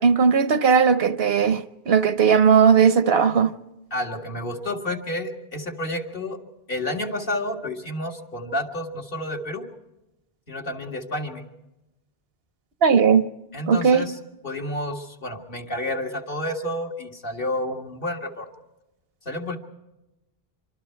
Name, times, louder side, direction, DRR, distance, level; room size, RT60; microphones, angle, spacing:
voice 1, 0.0-3.5 12.8-13.2 13.7-14.1, right 6 dB, 70° right, 1.1 m, -17 dB
voice 2, 3.9-6.4 6.7-9.7 10.5-11.4 13.5-14.2 14.4-18.5 19.3-19.6, left 1 dB, 60° left, 2.2 m, -30 dB
26.0 x 25.0 x 4.5 m
omnidirectional pair, 1.0 m